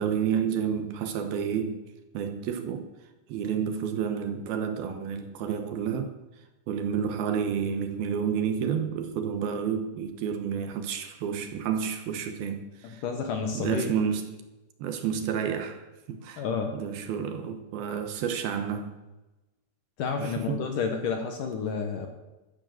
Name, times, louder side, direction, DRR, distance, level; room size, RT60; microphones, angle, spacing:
voice 1, 0.0-1.8 2.1-2.9 3.3-6.1 6.7-13.0 13.5-14.3 14.8-16.5 16.7-18.9 20.2-20.7, right 7 dB, 70° right, 2.7 m, -30 dB
voice 2, 13.0-13.9 16.4-16.7 20.0-22.1, left 5 dB, 65° left, 2.3 m, -30 dB
13.0 x 10.0 x 8.0 m
omnidirectional pair, 5.0 m